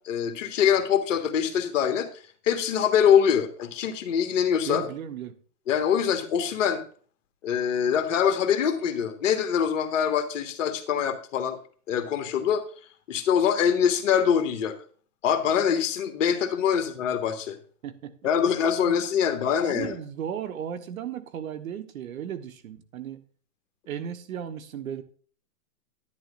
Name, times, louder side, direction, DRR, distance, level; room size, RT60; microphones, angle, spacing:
voice 1, 0.0-2.1 2.4-4.8 5.7-6.8 7.4-11.6 11.9-12.6 13.1-14.7 15.2-17.6 18.2-19.9, left 8 dB, 55° left, 1.6 m, -24 dB
voice 2, 4.6-5.4 17.8-18.3 18.8-19.0 19.4-23.2 23.9-25.0, right 9 dB, 60° right, 1.3 m, -35 dB
11.0 x 11.0 x 2.5 m
hypercardioid pair, 135°, 47 cm